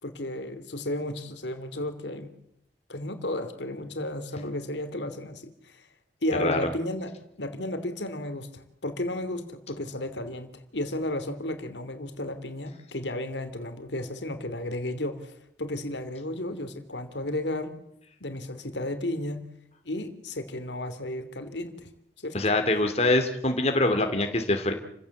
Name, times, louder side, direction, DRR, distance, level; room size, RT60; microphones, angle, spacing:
voice 1, 0.0-2.3 2.9-5.9 6.2-7.1 7.4-17.7 18.2-19.4 19.8-21.9 22.2-22.4, left 1 dB, 80° left, 9 dB, 2.9 m, -33 dB
voice 2, 22.3-24.7, left 2 dB, 35° left, 6 dB, 2.5 m, -24 dB
29.5 x 16.0 x 8.4 m, 0.76 s
head